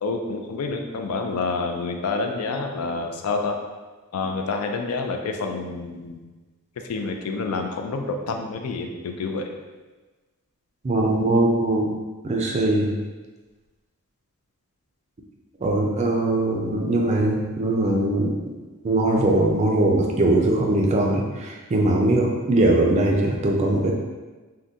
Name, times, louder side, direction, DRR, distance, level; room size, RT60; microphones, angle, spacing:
voice 1, 0.0-3.6 4.1-6.2 6.9-9.5, left 3 dB, 75° left, 4 dB, 0.4 m, -28 dB
voice 2, 10.8-11.9 12.2-12.9 15.6-18.4 18.8-23.9, right 1 dB, 30° right, 0 dB, 0.4 m, -21 dB
3.6 x 2.2 x 2.6 m, 1.3 s
head